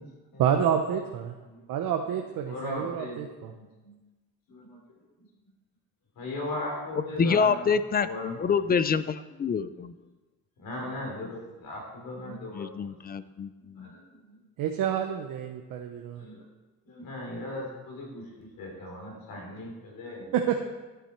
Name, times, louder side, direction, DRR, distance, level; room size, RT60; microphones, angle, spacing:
voice 1, 0.4-1.3 1.7-3.5 14.6-16.3 20.3-20.6, right 8 dB, 65° right, 4 dB, 0.9 m, -28 dB
voice 2, 2.5-3.2 3.8-4.0 4.5-4.8 6.2-7.6 8.0-8.5 10.6-12.9 13.8-14.0 14.3-14.4 16.2-16.4 16.9-20.3, left 1 dB, 70° left, 0 dB, 3.7 m, -38 dB
voice 3, 7.2-9.9 12.5-13.9, left 6 dB, 25° left, 14 dB, 0.4 m, -27 dB
10.5 x 8.4 x 4.5 m, 1.2 s
cardioid pair, 110°, 36 cm